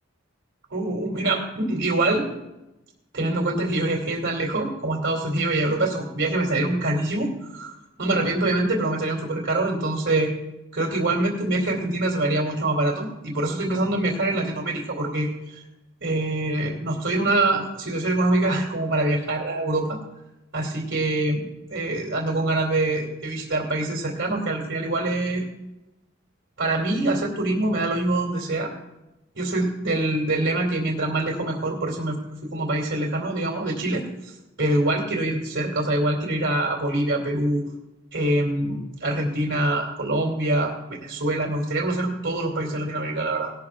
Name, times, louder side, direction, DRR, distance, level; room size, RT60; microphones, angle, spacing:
voice 1, 0.7-2.3 3.1-7.7 8.0-10.3 10.7-15.6 16.0-20.0 20.5-21.4 21.7-25.4 26.6-28.7 29.3-32.2 32.5-34.0 34.6-37.6 38.1-43.5, right 2 dB, 65° right, -4 dB, 2.6 m, -24 dB
18.5 x 13.0 x 2.4 m, 0.96 s
head